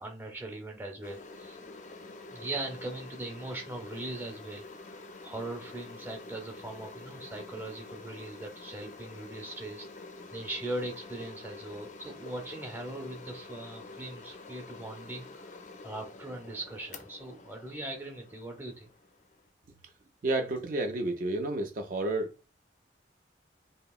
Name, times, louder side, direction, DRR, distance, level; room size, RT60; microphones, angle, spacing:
voice 1, 0.0-1.6 2.3-4.6 5.0-9.9 10.3-15.4 15.8-18.9, right 2 dB, 10° right, 0.6 m, -40 dB
sound 1, 1.0-19.5, left 3 dB, 40° left, 0.3 m, -47 dB
voice 2, 20.2-22.5, right 2 dB, 50° right, 0.3 m, -31 dB
2.8 x 2.7 x 2.3 m
head